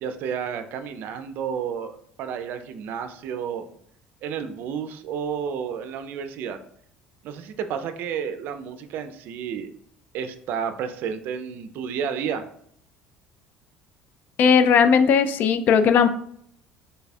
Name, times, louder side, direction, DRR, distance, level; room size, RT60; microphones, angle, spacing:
voice 1, 0.0-3.7 4.2-6.6 7.2-9.7 10.1-12.4, right 7 dB, 60° right, 8 dB, 0.4 m, -31 dB
voice 2, 14.4-16.1, left 6 dB, 50° left, 11 dB, 0.3 m, -17 dB
3.3 x 2.3 x 4.1 m, 0.67 s
cardioid pair, 120°, 4 cm